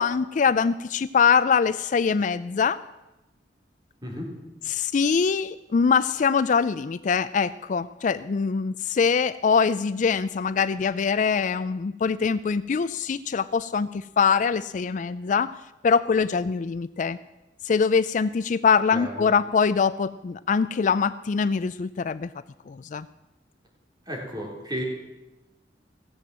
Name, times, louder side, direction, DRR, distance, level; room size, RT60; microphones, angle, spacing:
voice 1, 0.0-2.8 4.7-15.5 15.8-17.2 17.6-22.3 22.7-23.1, left 5 dB, 45° left, 15 dB, 0.4 m, -23 dB
voice 2, 18.9-19.3 24.1-24.8, equal, 25° right, -1 dB, 3.6 m, -33 dB
16.5 x 7.8 x 7.5 m, 0.98 s
head